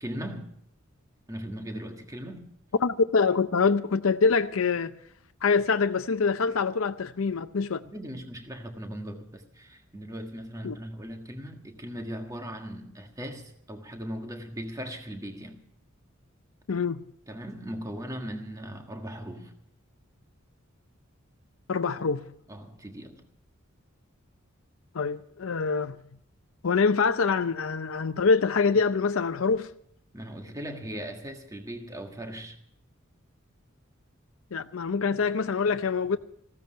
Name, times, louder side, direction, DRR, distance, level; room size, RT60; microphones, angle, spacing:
voice 1, 0.0-0.5 1.3-2.5 7.8-15.6 17.3-19.5 22.0-22.1 22.5-23.2 30.1-32.6, equal, 15° right, 1.6 m, -38 dB
voice 2, 2.8-4.9 5.4-7.8 10.6-10.8 16.7-17.0 21.7-22.2 24.9-26.0 26.6-29.7 34.5-36.2, left 5 dB, 75° left, 0.6 m, -25 dB
15.5 x 14.0 x 5.6 m
head